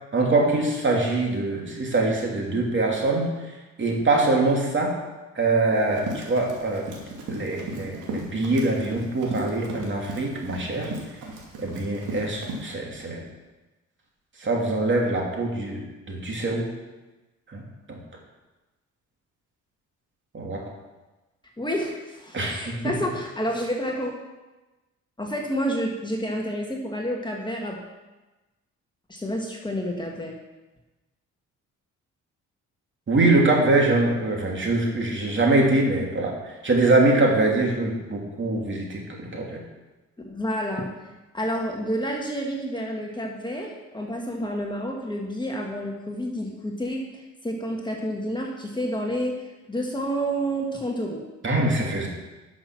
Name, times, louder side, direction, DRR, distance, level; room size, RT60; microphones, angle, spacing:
voice 1, 0.1-3.3 3.8-4.9 5.3-6.9 7.3-10.9 11.6-13.2 14.4-16.7 17.5-17.6 17.9-18.0 20.3-20.6 22.3-22.8 33.1-39.6 51.4-52.1, right 2 dB, 40° right, -1 dB, 2.8 m, -23 dB
Run, 5.7-12.6, right 2 dB, 85° right, 2.4 m, -36 dB
voice 2, 21.6-24.1 25.2-27.8 29.1-30.3 40.2-40.9 41.3-51.2, equal, 15° left, 0 dB, 1.6 m, -29 dB
11.5 x 6.2 x 6.0 m, 1.1 s
cardioid pair, 90°, 30 cm